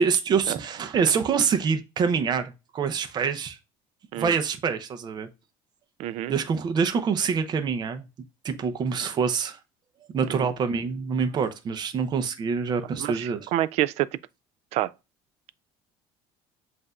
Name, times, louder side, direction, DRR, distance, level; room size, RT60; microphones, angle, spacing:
voice 1, 0.0-3.6 4.2-5.3 6.3-8.1 8.4-9.6 10.1-13.5, right 6 dB, 40° right, 0.7 m, -25 dB
voice 2, 6.0-6.3 10.3-10.5 13.0-14.1 14.7-14.9, right 13 dB, 65° right, 0.4 m, -27 dB
7.6 x 2.7 x 2.3 m
cardioid pair, 115°, 11 cm